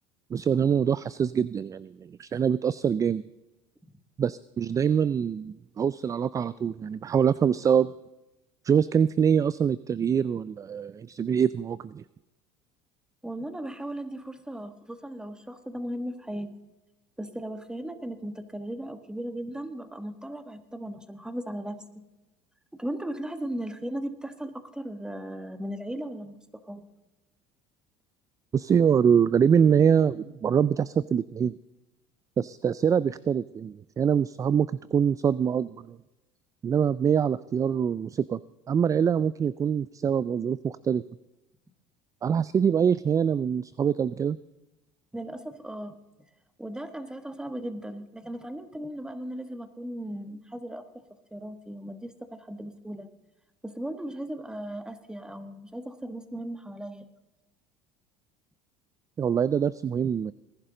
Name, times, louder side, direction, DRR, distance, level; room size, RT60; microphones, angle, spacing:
voice 1, 0.3-1.9 2.2-3.2 4.2-7.9 8.6-12.0 28.5-31.5 32.4-36.0 36.6-38.4 38.7-41.0 42.2-44.4 59.2-60.3, right 7 dB, 25° right, 18 dB, 0.3 m, -24 dB
voice 2, 13.2-16.5 17.2-22.0 22.7-26.8 45.1-45.9 46.6-51.0 51.3-53.1 53.6-57.1, right 1 dB, 5° right, 10 dB, 1.3 m, -37 dB
20.0 x 11.0 x 3.8 m, 1.0 s
supercardioid pair, 95°, 13 cm